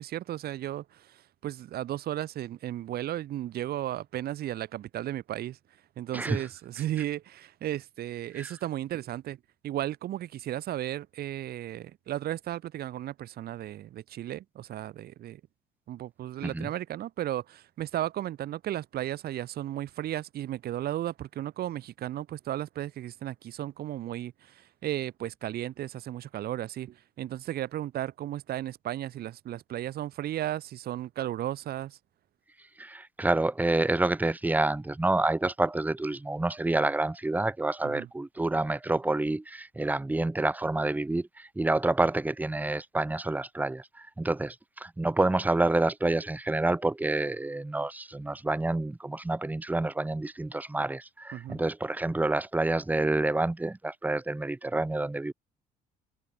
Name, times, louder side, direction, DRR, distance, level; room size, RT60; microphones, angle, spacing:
voice 1, 0.0-5.6 6.0-9.4 9.6-15.4 15.9-32.0 37.8-38.1 51.3-51.6, right 13 dB, 65° right, 6.8 m, -35 dB
voice 2, 6.1-6.5 8.3-8.5 16.4-16.7 32.8-55.3, right 2 dB, 10° right, 1.3 m, -28 dB
cardioid pair, 110°, 17 cm